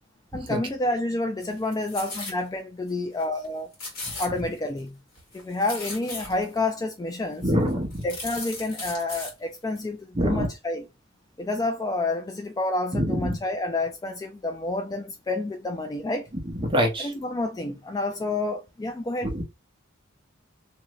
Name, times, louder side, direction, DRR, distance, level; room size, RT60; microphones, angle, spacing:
voice 1, 0.3-3.7 4.2-5.0 5.3-7.5 8.0-10.9 11.4-16.3 17.0-19.3, left 2 dB, 20° left, 0.3 m, -29 dB
sound 1, 1.4-2.4 2.9-3.0 3.2-3.5 3.7-4.8 5.1-6.6 7.2-7.3 7.7-9.3 9.7-9.8, left 2 dB, 50° left, 1.7 m, -37 dB
voice 2, 7.4-7.9 10.2-10.5 12.9-13.3 16.6-17.1 19.2-19.4, equal, 25° right, 0.8 m, -24 dB
2.8 x 2.6 x 3.0 m
head